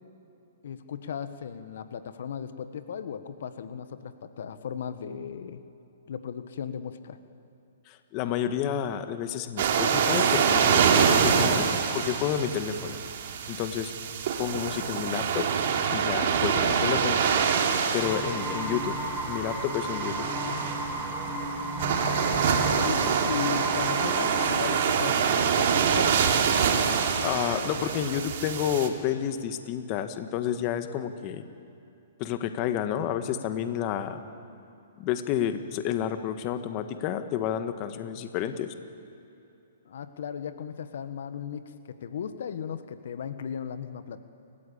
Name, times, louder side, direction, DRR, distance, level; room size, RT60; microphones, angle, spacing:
voice 1, 0.6-5.6 6.1-7.2 22.6-26.1 39.8-41.7 42.0-44.2, left 7 dB, 70° left, 10 dB, 1.3 m, -36 dB
voice 2, 7.9-11.7 11.9-13.0 13.5-13.9 14.4-15.5 15.9-17.2 17.9-19.0 19.3-20.3 27.2-31.4 32.2-34.2 35.0-38.7, left 9 dB, 35° left, 9 dB, 1.4 m, -30 dB
sound 1, 9.6-28.9, right 6 dB, 55° right, 3.0 m, -25 dB
sound 2, 18.0-24.9, right 1 dB, 20° right, 7.0 m, -33 dB
30.0 x 14.5 x 8.6 m, 2.8 s
hypercardioid pair, 140°, 0 cm